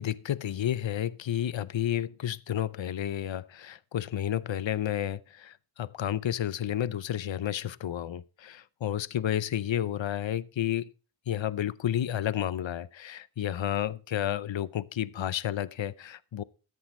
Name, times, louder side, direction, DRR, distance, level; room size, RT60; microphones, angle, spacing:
voice 1, 0.0-10.9 11.3-16.4, left 10 dB, 70° left, 0.7 m, -31 dB
14.0 x 8.6 x 4.3 m
cardioid pair, 45°, 48 cm